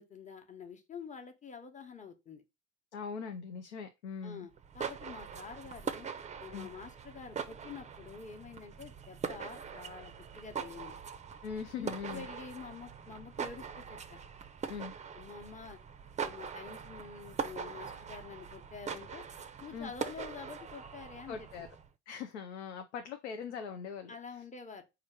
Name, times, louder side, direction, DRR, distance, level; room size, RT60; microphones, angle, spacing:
voice 1, 0.0-2.4 4.2-6.1 6.4-11.0 11.8-14.2 15.2-15.8 16.2-19.2 19.6-21.7 24.1-24.8, left 5 dB, 20° left, 1.0 m, -47 dB
voice 2, 2.9-4.5 6.5-6.7 11.4-12.3 14.7-14.9 19.7-19.9 21.3-21.7 22.1-24.2, left 6 dB, 90° left, 0.6 m, -41 dB
sound 1, 4.5-21.9, right 6 dB, 20° right, 0.5 m, -42 dB
4.3 x 2.5 x 4.4 m
hypercardioid pair, 70°, 34 cm